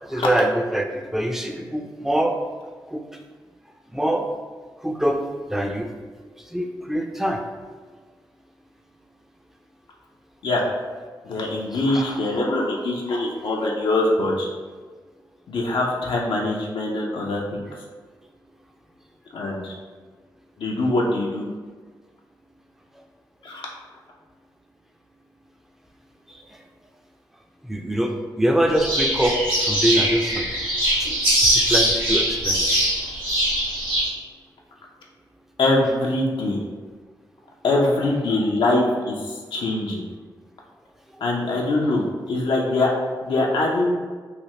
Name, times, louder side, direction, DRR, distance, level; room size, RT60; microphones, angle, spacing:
voice 1, 0.0-2.4 2.9-3.0 3.9-4.3 4.8-5.2 5.5-5.9 6.5-7.4 11.9-12.0 27.7-30.5 31.0-31.1 31.5-32.7, right 1 dB, 5° right, 3 dB, 0.4 m, -24 dB
voice 2, 11.2-14.5 15.5-17.6 19.3-19.7 20.6-21.5 23.4-23.7 35.6-36.6 37.6-40.0 41.2-42.9 43.2-44.0, left 2 dB, 75° left, -2 dB, 0.5 m, -23 dB
sound 1, 28.8-34.1, right 1 dB, 65° right, 1.4 m, -22 dB
3.2 x 2.2 x 2.8 m, 1.5 s
cardioid pair, 50°, 9 cm